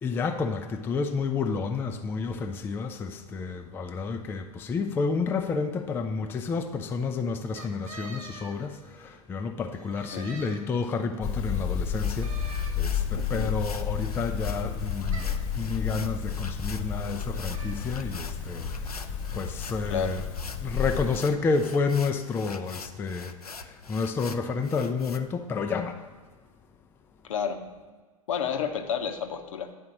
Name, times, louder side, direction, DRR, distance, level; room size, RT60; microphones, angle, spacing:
voice 1, 0.0-18.9 19.3-20.2 20.6-26.0, left 4 dB, 10° left, 5 dB, 0.4 m, -30 dB
sound 1, 7.6-9.2 9.7-11.1 12.2-13.3 15.1-15.5 17.5-18.0, right 3 dB, 65° right, 1.0 m, -46 dB
sound 2, 11.2-21.2, left 7 dB, 40° left, 1.0 m, -31 dB
sound 3, 11.7-25.2, left 4 dB, 90° left, 0.4 m, -45 dB
voice 2, 13.1-13.5 15.0-15.2 19.9-20.2 27.3-27.6 28.3-29.7, left 7 dB, 60° left, 7 dB, 0.8 m, -31 dB
9.5 x 4.3 x 6.0 m, 1.4 s
figure-of-eight pair, 95°, 19 cm